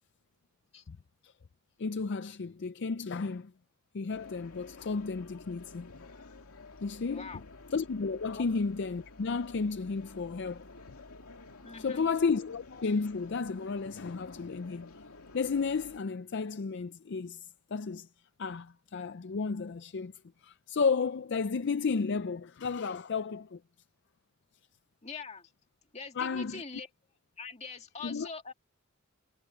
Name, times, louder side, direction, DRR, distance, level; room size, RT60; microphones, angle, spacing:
voice 1, 1.8-3.5 3.9-6.1 6.8-7.4 7.7-10.7 11.8-14.9 15.3-18.1 18.4-20.1 20.4-23.6 26.2-26.6 28.0-28.3, left 4 dB, 55° left, 0.5 m, -33 dB
sound 1, 4.1-16.0, left 3 dB, 90° left, 2.4 m, -51 dB
voice 2, 7.1-7.4 8.3-8.4 11.6-12.0 25.0-25.5 25.9-26.9 27.4-28.5, left 4 dB, 30° left, 2.2 m, -43 dB
head